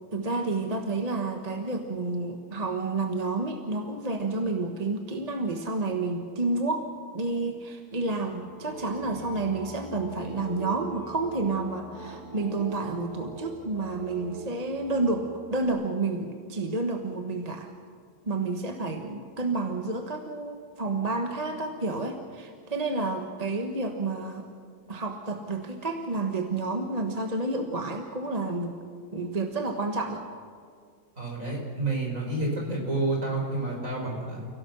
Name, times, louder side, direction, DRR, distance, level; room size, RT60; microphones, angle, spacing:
voice 1, 0.1-6.9 7.1-17.7 18.3-24.5 24.9-28.8 29.1-30.2, right 3 dB, 25° right, 4 dB, 1.3 m, -30 dB
sound 1, 8.1-15.7, right 3 dB, 70° right, 3.0 m, -42 dB
voice 2, 31.2-34.4, right 2 dB, 50° right, -1 dB, 5.8 m, -29 dB
29.5 x 17.0 x 6.3 m, 2.1 s
omnidirectional pair, 1.7 m